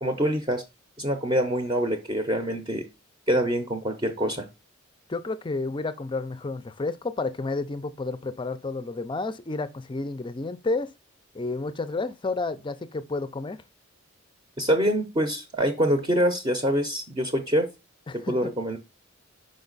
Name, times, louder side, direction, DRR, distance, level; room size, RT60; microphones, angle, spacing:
voice 1, 0.0-0.6 1.0-2.8 3.3-4.5 14.6-17.7 18.1-18.8, equal, 25° right, 0.8 m, -25 dB
voice 2, 5.1-10.9 11.3-13.6 18.1-18.5, left 3 dB, 25° left, 0.5 m, -31 dB
5.4 x 5.2 x 4.0 m
head